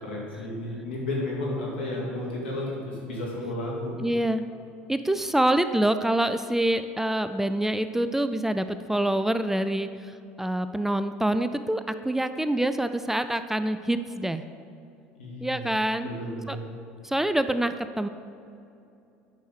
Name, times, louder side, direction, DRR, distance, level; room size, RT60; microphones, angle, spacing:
voice 1, 0.0-4.0 15.2-15.6 16.0-16.6, left 1 dB, 90° left, -3 dB, 2.3 m, -32 dB
voice 2, 4.0-4.4 4.9-14.4 15.4-16.1 16.5-16.6 17.0-18.1, right 1 dB, 5° right, 11 dB, 0.4 m, -26 dB
9.1 x 6.3 x 5.0 m, 2.7 s
hypercardioid pair, 75°, 6 cm